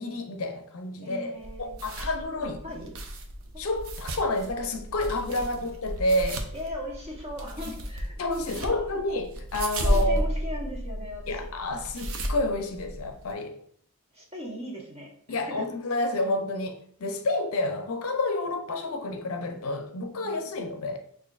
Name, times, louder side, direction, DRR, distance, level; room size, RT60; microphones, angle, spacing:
voice 1, 0.0-2.6 3.6-6.5 8.2-10.2 11.3-13.6 15.3-21.0, left 2 dB, 70° left, 0.5 m, -29 dB
voice 2, 1.0-1.8 2.0-2.1 2.4-2.9 3.5-3.7 5.6-5.7 6.5-8.2 8.5-9.0 9.8-11.5 14.1-15.7 20.1-20.5, left 1 dB, 30° right, 1.0 m, -39 dB
sound 1, 1.4-13.3, right 1 dB, 65° right, 0.6 m, -33 dB
6.2 x 2.5 x 2.4 m
head